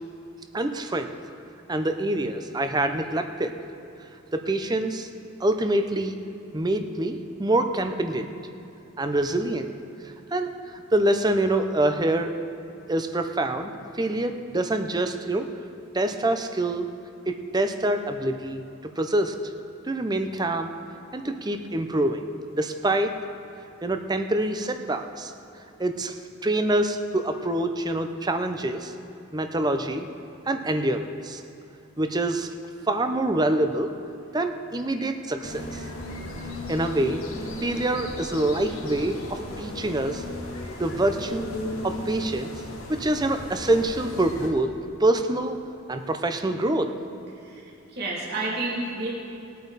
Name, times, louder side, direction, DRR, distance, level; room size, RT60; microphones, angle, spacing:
voice 1, 0.5-1.1 1.7-3.6 4.3-5.1 5.4-6.2 6.5-8.3 9.0-9.7 10.0-12.3 12.9-15.5 15.9-16.9 17.3-18.6 19.0-19.3 19.8-20.7 21.1-22.3 22.5-23.1 23.8-25.3 25.8-28.9 29.3-30.1 30.5-31.4 32.0-32.5 32.9-33.9 34.3-35.8 36.7-37.2 37.6-40.2 40.8-41.5 41.8-42.5 42.9-44.7 45.0-45.6 45.9-46.9, right 1 dB, 20° right, 7 dB, 0.6 m, -26 dB
sound 1, 35.4-44.5, left 1 dB, 85° left, 2.0 m, -35 dB
voice 2, 47.3-49.1, right 2 dB, 50° right, -6 dB, 2.7 m, -31 dB
20.5 x 8.4 x 4.1 m, 2.7 s
head